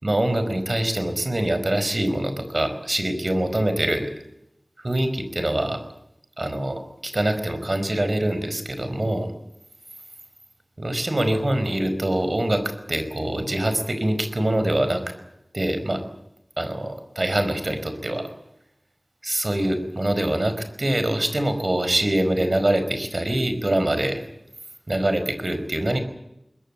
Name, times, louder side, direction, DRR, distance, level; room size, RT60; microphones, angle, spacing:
voice 1, 0.0-4.1 4.8-5.8 6.4-9.3 10.8-15.0 15.5-16.0 16.6-18.3 19.2-24.2 24.9-26.0, right 1 dB, 55° right, 9 dB, 4.9 m, -24 dB
22.0 x 21.0 x 8.8 m, 0.82 s
wide cardioid pair, 40°, 0 cm